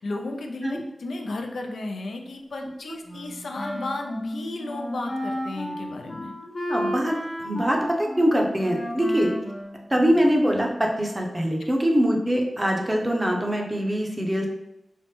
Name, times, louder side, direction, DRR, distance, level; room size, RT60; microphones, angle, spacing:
voice 1, 0.0-6.3, left 2 dB, 85° left, 3 dB, 0.3 m, -33 dB
Wind instrument woodwind instrument, 3.0-10.5, equal, 40° left, 0.7 m, -33 dB
voice 2, 6.7-9.3 9.9-14.5, equal, 20° right, 1 dB, 0.6 m, -23 dB
3.2 x 2.0 x 2.9 m, 0.89 s
wide cardioid pair, 65°, 0 cm